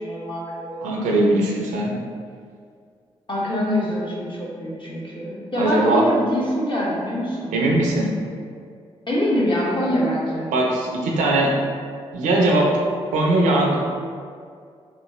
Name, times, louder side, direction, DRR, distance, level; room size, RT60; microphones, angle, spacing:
voice 1, 0.0-1.1 1.4-1.5 3.3-7.6 9.1-10.5, equal, 40° left, -6 dB, 1.1 m, -24 dB
voice 2, 0.8-1.9 5.6-6.0 7.5-8.1 10.5-11.5 12.1-12.7 13.1-13.8, right 2 dB, 85° right, -1 dB, 0.5 m, -20 dB
3.1 x 2.3 x 3.0 m, 2.2 s
supercardioid pair, 40°, 13 cm